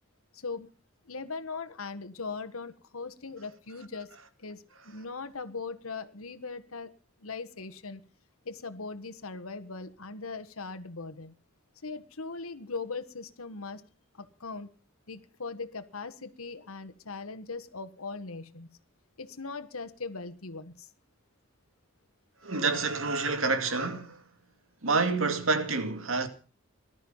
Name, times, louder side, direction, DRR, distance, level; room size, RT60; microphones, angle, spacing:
voice 1, 0.3-0.7 1.1-4.1 4.4-6.9 7.2-8.0 8.4-11.3 11.8-13.8 14.1-14.7 15.1-18.7 19.2-20.9, left 4 dB, 90° left, 1.6 m, -39 dB
voice 2, 22.4-24.2 24.8-26.3, right 3 dB, 70° right, 2.4 m, -28 dB
19.5 x 13.0 x 5.6 m
head